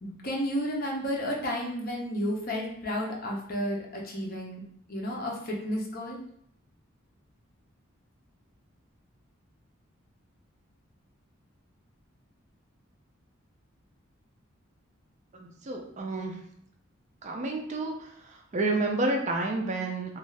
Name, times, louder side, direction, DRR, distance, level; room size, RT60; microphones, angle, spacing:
voice 1, 0.0-4.6 4.9-6.2, equal, 45° left, -1 dB, 0.6 m, -32 dB
voice 2, 15.4-16.3 17.2-17.9 18.5-20.2, right 2 dB, 35° right, 1 dB, 0.4 m, -29 dB
2.6 x 2.3 x 3.2 m, 0.68 s
head